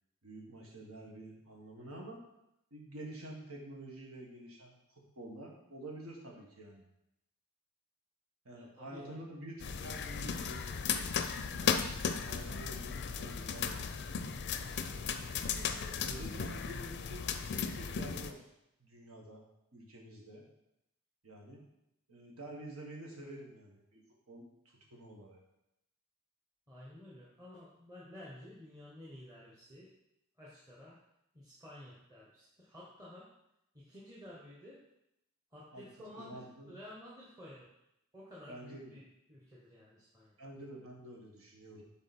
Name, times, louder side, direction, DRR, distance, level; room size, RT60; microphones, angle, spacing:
voice 1, 0.2-2.2 2.7-6.8 8.4-10.8 11.5-14.5 15.5-17.3 17.5-18.4 18.8-19.4 19.7-20.5 21.2-21.6 22.1-25.4 35.7-35.8 36.2-36.7 38.5-38.9 40.4-41.8, right 1 dB, 80° right, -1 dB, 1.6 m, -49 dB
voice 2, 8.5-9.2 26.7-29.9 30.4-31.0 31.3-33.3 33.7-34.8 35.5-37.7 38.1-39.0 39.3-40.3, left 1 dB, 15° right, -6 dB, 1.1 m, -52 dB
sound 1, 9.6-18.3, left 6 dB, 55° left, 0.4 m, -36 dB
7.4 x 4.0 x 4.4 m, 0.83 s
head